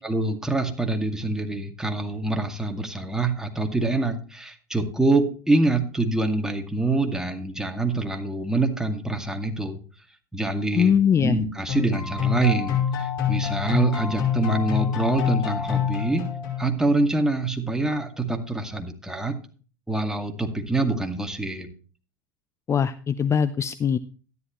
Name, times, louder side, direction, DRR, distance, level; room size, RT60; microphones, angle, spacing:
voice 1, 0.0-9.8 10.3-10.9 11.2-16.3 16.6-19.3 19.9-21.7, right 2 dB, 5° right, 4 dB, 2.1 m, -25 dB
voice 2, 10.8-11.4 22.7-24.0, left 7 dB, 25° left, 14 dB, 0.6 m, -21 dB
sound 1, 11.7-16.9, left 8 dB, 65° left, 5.1 m, -26 dB
13.5 x 10.5 x 3.1 m, 0.38 s
hypercardioid pair, 80°, 10 cm